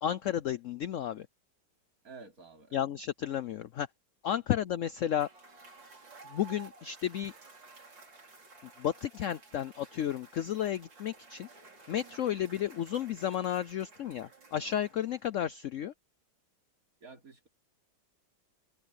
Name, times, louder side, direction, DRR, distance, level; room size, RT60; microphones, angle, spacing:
voice 1, 0.0-1.3 2.7-3.9 4.2-5.3 6.3-7.3 8.6-11.5 11.9-15.9, left 10 dB, 70° left, 0.7 m, -32 dB
voice 2, 2.0-2.9 17.0-17.5, right 4 dB, 50° right, 3.7 m, -51 dB
Cheering / Applause / Crowd, 5.0-15.4, right 4 dB, 85° right, 5.1 m, -54 dB
omnidirectional pair, 1.9 m